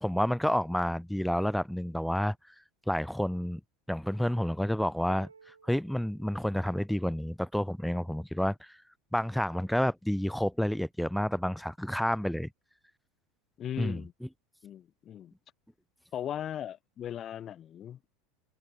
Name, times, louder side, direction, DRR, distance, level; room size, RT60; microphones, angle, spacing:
voice 1, 0.0-2.4 2.9-3.6 3.9-5.3 5.6-8.8 9.1-12.5 13.8-14.3, equal, ahead, 0.6 m, -29 dB
sound 1, 5.1-7.1, right 5 dB, 90° right, 4.9 m, -57 dB
voice 2, 13.6-14.1 14.6-15.3 16.1-18.1, left 10 dB, 40° left, 0.7 m, -38 dB
hypercardioid pair, 80°, 0 cm